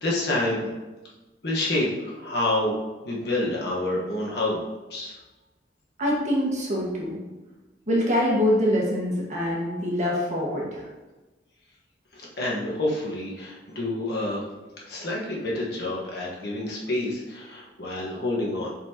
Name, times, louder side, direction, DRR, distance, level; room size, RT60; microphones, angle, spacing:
voice 1, 0.0-0.7 1.4-2.8 3.0-4.6 4.9-5.2 12.1-14.4 14.8-18.7, left 1 dB, 65° left, -4 dB, 1.3 m, -28 dB
voice 2, 6.0-7.2 7.9-10.9, equal, 45° right, -3 dB, 1.6 m, -24 dB
7.6 x 4.3 x 2.9 m, 1.1 s
head